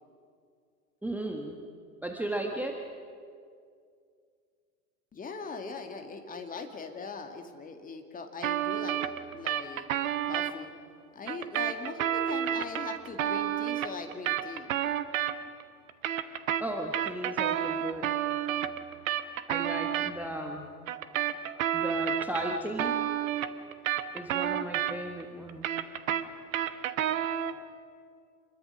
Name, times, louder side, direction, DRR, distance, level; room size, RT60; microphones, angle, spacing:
voice 1, 1.0-1.6 2.0-2.8 16.6-18.1 19.5-20.6 21.7-23.0 24.1-25.7, right 1 dB, 5° right, 2 dB, 1.4 m, -35 dB
voice 2, 5.1-9.0 9.3-9.9 10.2-10.7 11.1-14.7, left 4 dB, 15° left, 5 dB, 2.1 m, -40 dB
sound 1, 8.4-10.5 11.3-15.6 15.9-20.1 20.9-25.2 25.5-27.6, right 10 dB, 55° right, 1.2 m, -30 dB
27.5 x 21.5 x 6.3 m, 2.3 s
figure-of-eight pair, 90°, 48 cm